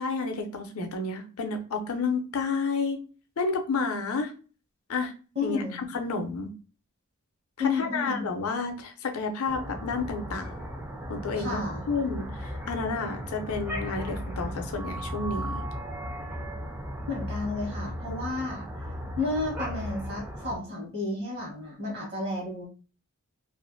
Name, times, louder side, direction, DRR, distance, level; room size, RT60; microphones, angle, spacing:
voice 1, 0.0-3.0 3.4-4.3 4.9-5.1 5.4-6.5 7.6-10.7 11.1-15.6, left 4 dB, 70° left, 5 dB, 0.5 m, -30 dB
voice 2, 5.3-5.8 7.6-8.2 11.4-11.8 17.1-18.6 19.2-22.7, left 3 dB, 50° right, -2 dB, 1.1 m, -31 dB
sound 1, 9.5-20.6, equal, 10° right, 0.3 m, -36 dB
2.5 x 2.5 x 2.5 m, 0.37 s
head